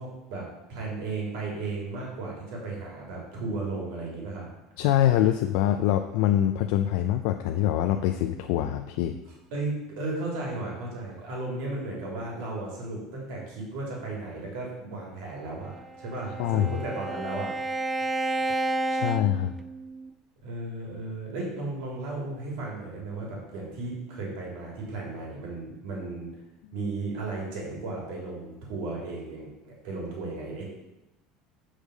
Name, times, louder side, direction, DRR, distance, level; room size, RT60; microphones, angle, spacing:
voice 1, 0.0-4.5 9.2-17.5 20.4-26.3 26.7-30.7, right 2 dB, 70° right, -2 dB, 3.0 m, -35 dB
voice 2, 4.8-9.2 16.4-16.7 18.9-19.5, left 12 dB, 65° left, 6 dB, 0.4 m, -24 dB
Bowed string instrument, 15.7-20.1, right 2 dB, 10° right, 0.3 m, -31 dB
7.2 x 4.9 x 6.4 m, 0.97 s
cardioid pair, 170°, 0 cm